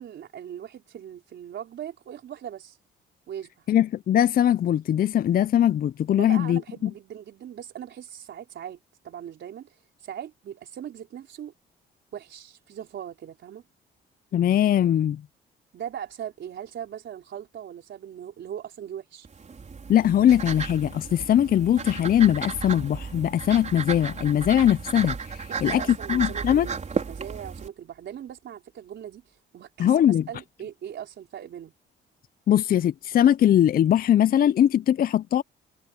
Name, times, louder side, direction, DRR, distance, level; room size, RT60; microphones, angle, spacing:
voice 1, 0.0-2.8 3.3-3.7 6.1-8.8 9.0-11.5 12.1-13.6 15.7-19.3 25.5-31.7, right 9 dB, 65° right, 4.4 m, -39 dB
voice 2, 3.7-6.9 14.3-15.2 19.9-25.8 26.1-26.7 29.8-30.2 32.5-35.4, left 10 dB, 45° left, 0.4 m, -21 dB
sound 1, 19.2-27.7, right 5 dB, 35° right, 4.6 m, -34 dB
cardioid pair, 90°, 20 cm